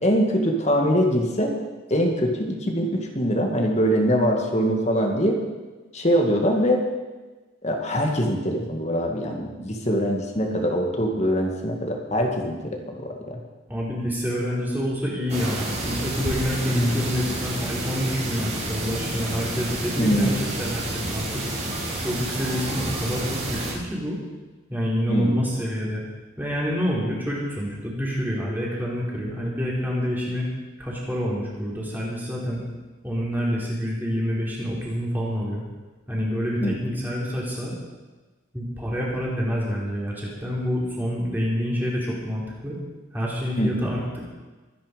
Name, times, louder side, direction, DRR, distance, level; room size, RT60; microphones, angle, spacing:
voice 1, 0.0-1.5 1.9-5.4 5.9-6.8 7.6-13.4 16.7-17.0 20.0-20.5 25.1-25.4 36.6-36.8 43.6-43.9, equal, 35° left, 2 dB, 2.2 m, -23 dB
voice 2, 13.7-21.4 22.0-24.2 24.7-26.0 26.4-30.5 30.8-32.6 33.0-35.6 36.1-37.8 38.5-42.8 43.1-44.0, equal, 10° right, -5 dB, 4.2 m, -27 dB
sound 1, 15.3-23.7, right 1 dB, 35° right, 5.6 m, -29 dB
23.5 x 10.5 x 5.3 m, 1.3 s
head